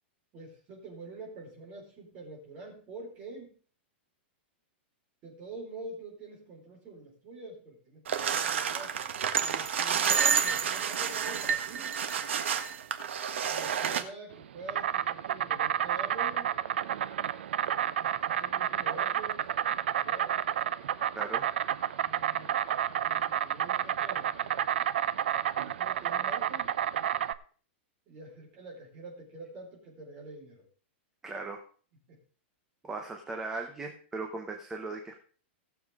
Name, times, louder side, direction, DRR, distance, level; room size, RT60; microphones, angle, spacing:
voice 1, 0.3-3.5 5.2-11.9 13.5-16.6 17.7-19.5 20.0-20.3 22.0-24.6 25.6-26.7 28.1-30.6 32.1-32.2, right 2 dB, 25° right, -1 dB, 4.4 m, -46 dB
sound 1, 8.1-14.0, right 7 dB, 90° right, 1.6 m, -29 dB
Insect, 14.3-27.3, right 10 dB, 65° right, 0.7 m, -30 dB
voice 2, 21.1-21.4 31.2-31.6 32.8-35.2, right 3 dB, 10° right, 3 dB, 0.8 m, -38 dB
18.5 x 7.1 x 3.7 m, 0.42 s
supercardioid pair, 180°, 6 cm